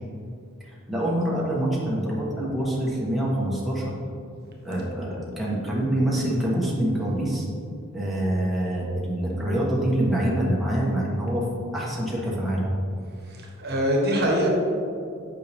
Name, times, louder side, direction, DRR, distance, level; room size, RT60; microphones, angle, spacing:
voice 1, 0.9-3.9 4.6-7.5 7.9-11.4 11.7-12.7, right 1 dB, ahead, -6 dB, 1.1 m, -25 dB
voice 2, 13.3-14.5, equal, 50° right, -1 dB, 1.2 m, -24 dB
7.8 x 5.4 x 3.5 m, 2.4 s
head